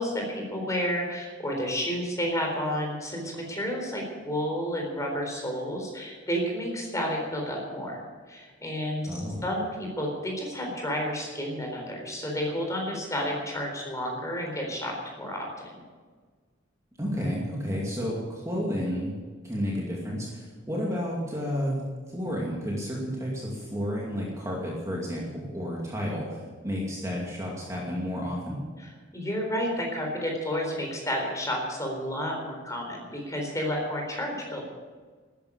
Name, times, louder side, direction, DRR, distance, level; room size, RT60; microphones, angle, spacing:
voice 1, 0.0-8.0 8.3-15.7 28.8-34.7, equal, 15° left, 1 dB, 4.0 m, -31 dB
voice 2, 9.1-9.4 17.0-19.2 19.4-21.8 22.1-28.6, equal, 15° right, -3 dB, 2.4 m, -31 dB
13.0 x 10.5 x 8.4 m, 1.5 s
head